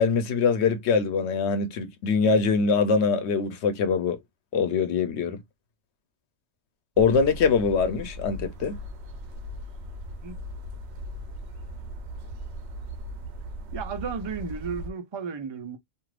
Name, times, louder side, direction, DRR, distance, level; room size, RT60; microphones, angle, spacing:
voice 1, 0.0-4.2 4.5-5.4 7.0-8.8, left 5 dB, 90° left, 0.9 m, -23 dB
sound 1, 7.0-14.9, equal, 80° right, 0.9 m, -38 dB
voice 2, 13.7-15.8, right 5 dB, 35° right, 0.4 m, -34 dB
2.5 x 2.4 x 3.2 m
omnidirectional pair, 1.1 m